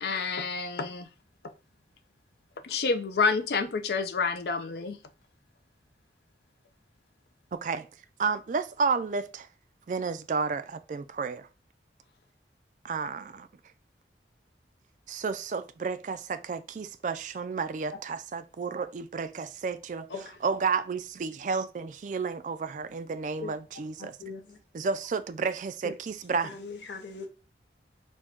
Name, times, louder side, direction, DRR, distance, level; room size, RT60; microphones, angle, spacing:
voice 1, 0.0-1.1 2.6-5.0, left 4 dB, 65° left, 0.4 m, -28 dB
voice 2, 7.5-7.9 8.2-9.5 9.9-11.5 12.8-13.5 15.1-20.1 20.4-24.1 24.7-26.5, right 5 dB, 45° right, 0.3 m, -31 dB
voice 3, 20.1-20.4 23.4-23.5 24.0-24.6 25.8-25.9 26.4-27.3, left 4 dB, 85° left, 0.7 m, -40 dB
4.4 x 2.2 x 4.4 m
head